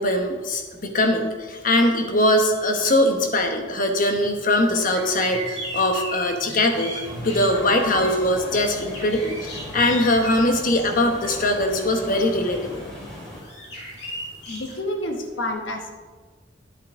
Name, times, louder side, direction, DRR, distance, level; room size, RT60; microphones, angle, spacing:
voice 1, 0.0-12.8, left 1 dB, 45° left, 4 dB, 1.1 m, -21 dB
sound 1, 4.1-14.7, equal, 65° left, 2.9 m, -38 dB
sound 2, 7.0-13.4, equal, 5° left, 2.6 m, -36 dB
voice 2, 14.5-15.9, left 1 dB, 85° left, 4 dB, 1.2 m, -29 dB
10.0 x 8.4 x 3.7 m, 1.4 s
head